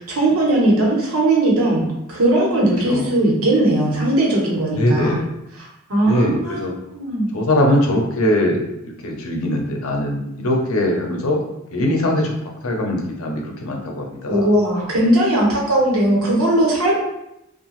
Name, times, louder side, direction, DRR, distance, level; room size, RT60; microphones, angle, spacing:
voice 1, 0.0-5.2 5.6-6.6 6.9-7.3 14.3-16.9, right 1 dB, 90° right, -3 dB, 0.9 m, -18 dB
voice 2, 4.7-5.3 6.0-6.7 7.3-11.4 11.7-12.3 12.6-14.5, left 1 dB, 75° left, 1 dB, 0.6 m, -21 dB
2.8 x 2.2 x 3.0 m, 0.84 s
head